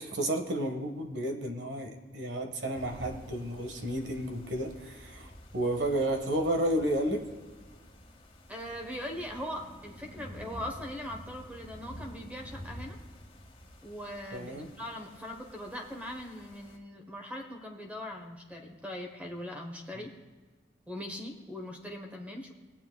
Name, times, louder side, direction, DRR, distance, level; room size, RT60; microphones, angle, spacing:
voice 1, 0.0-7.2 14.3-14.7 19.9-20.1, right 1 dB, 85° right, 4 dB, 1.4 m, -32 dB
sound 1, 2.7-16.8, equal, 30° left, 1.4 m, -49 dB
voice 2, 8.5-13.0 13.8-20.1 20.9-22.5, left 1 dB, 10° right, 2 dB, 1.0 m, -40 dB
18.0 x 8.8 x 2.3 m, 1.3 s
head